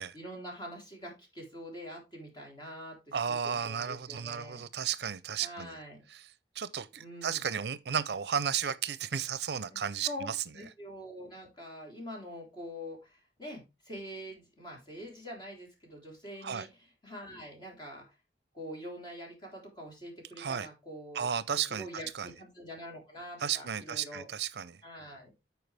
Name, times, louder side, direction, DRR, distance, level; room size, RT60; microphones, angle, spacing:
voice 1, 0.0-3.2 3.4-4.6 5.4-6.0 7.0-7.5 9.7-18.0 18.5-24.3 24.8-25.3, equal, 25° left, 3.5 m, -45 dB
voice 2, 3.1-5.8 6.1-6.2 6.6-10.3 16.4-16.7 20.4-20.7 21.1-21.9 22.1-22.3 23.4-24.8, right 7 dB, 70° right, 0.5 m, -33 dB
13.0 x 4.7 x 3.3 m
head